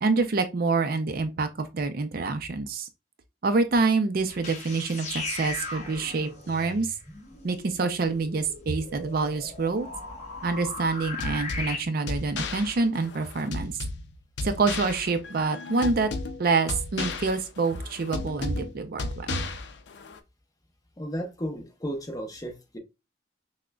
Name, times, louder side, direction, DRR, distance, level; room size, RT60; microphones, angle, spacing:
voice 1, 0.0-2.9 3.4-6.9 7.4-9.9 10.4-13.7 14.4-16.1 16.4-19.4, right 3 dB, 50° right, 0.4 m, -26 dB
sound 1, 4.3-11.8, left 3 dB, 40° left, 1.0 m, -38 dB
sound 2, 11.2-20.2, left 3 dB, 70° left, 0.5 m, -35 dB
voice 2, 21.0-22.8, equal, 20° left, 0.7 m, -34 dB
6.0 x 2.1 x 2.2 m
head